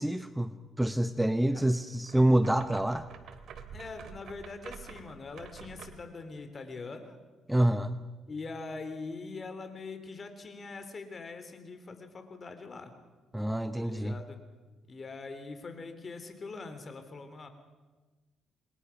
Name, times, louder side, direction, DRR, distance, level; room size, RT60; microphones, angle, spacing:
voice 1, 0.0-3.1 7.5-8.0 13.3-14.2, right 1 dB, 5° right, 11 dB, 0.9 m, -27 dB
sound 1, 2.0-6.1, right 7 dB, 70° right, 2.5 m, -48 dB
voice 2, 3.7-7.2 8.3-12.9 13.8-14.4 14.9-17.5, left 3 dB, 40° left, 8 dB, 3.5 m, -43 dB
28.0 x 21.5 x 6.0 m, 1.3 s
cardioid pair, 90°, 0 cm